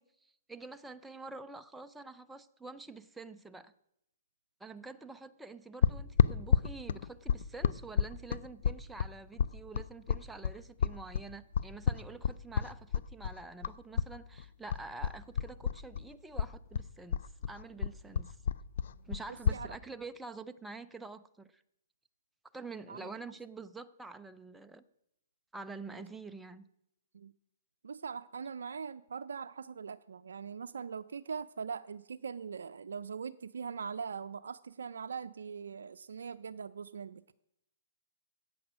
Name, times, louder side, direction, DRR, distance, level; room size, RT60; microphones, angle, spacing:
voice 1, 0.0-3.7 4.6-17.2 17.5-18.4 19.1-21.6 22.5-24.8 25.5-26.6, right 3 dB, 5° right, 9 dB, 0.5 m, -47 dB
sound 1, 5.8-14.1 14.4-16.1 16.4-19.6, left 7 dB, 65° left, 0.5 m, -30 dB
voice 2, 19.3-19.8 22.9-23.1 25.9-26.0 27.1-27.3 27.8-37.2, right 6 dB, 80° right, 9 dB, 0.4 m, -41 dB
13.5 x 8.8 x 6.1 m, 0.79 s
hypercardioid pair, 140°, 0 cm